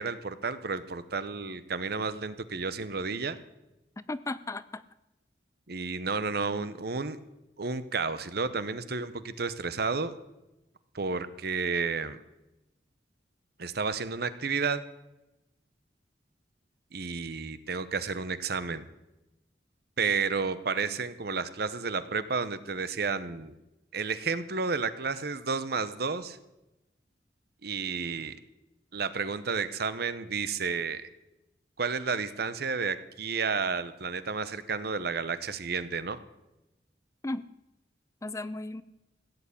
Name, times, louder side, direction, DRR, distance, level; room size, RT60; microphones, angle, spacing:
voice 1, 0.0-3.4 5.7-7.2 7.6-10.1 10.9-12.2 13.6-14.8 16.9-18.8 20.0-23.5 23.9-26.4 27.6-28.4 28.9-31.1 31.8-36.2, right 5 dB, 60° right, 13 dB, 0.9 m, -31 dB
voice 2, 4.0-4.8 37.2-37.5 38.2-38.8, left 2 dB, 15° left, 15 dB, 0.4 m, -35 dB
16.0 x 8.0 x 8.4 m, 0.96 s
head